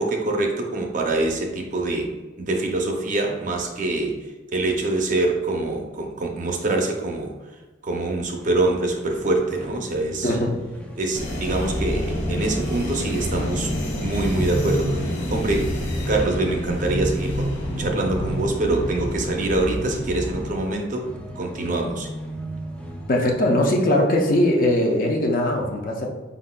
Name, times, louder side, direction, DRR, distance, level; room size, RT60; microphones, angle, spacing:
voice 1, 0.0-10.4 11.0-13.7 14.0-15.7 16.1-17.5 17.8-21.1 21.4-22.1, right 2 dB, 45° right, 2 dB, 0.5 m, -25 dB
sound 1, 8.4-23.1, equal, 5° left, 0.4 m, -39 dB
sound 2, 11.1-20.5, equal, 75° left, 0.9 m, -27 dB
voice 2, 23.1-26.1, left 1 dB, 45° left, 1 dB, 0.6 m, -20 dB
4.8 x 3.9 x 2.2 m, 1.3 s
head